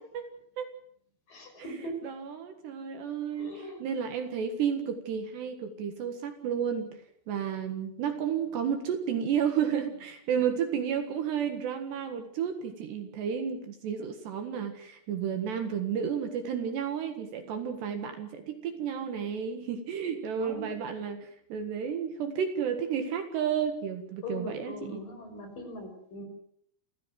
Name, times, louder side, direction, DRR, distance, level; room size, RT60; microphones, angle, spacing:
voice 1, 1.3-2.1 3.3-3.8 20.4-20.7 24.2-26.2, equal, 45° left, 5 dB, 7.1 m, -40 dB
voice 2, 2.0-3.5 3.8-25.0, right 8 dB, 65° right, 7 dB, 3.5 m, -32 dB
29.0 x 15.0 x 7.7 m, 0.66 s
omnidirectional pair, 5.8 m